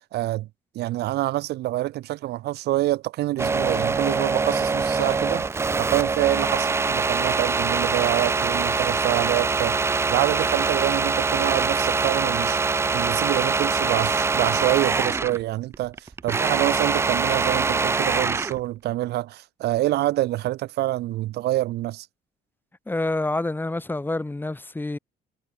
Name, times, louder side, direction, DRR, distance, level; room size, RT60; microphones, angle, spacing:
voice 1, 0.1-0.5 0.7-5.5 5.8-12.6 12.9-22.1, right 16 dB, 75° right, 2.3 m, -26 dB
sound 1, 3.4-15.4 15.7-18.6, right 4 dB, 15° right, 0.4 m, -23 dB
voice 2, 22.9-25.0, left 2 dB, 10° left, 4.2 m, -27 dB
cardioid pair, 110°, 17 cm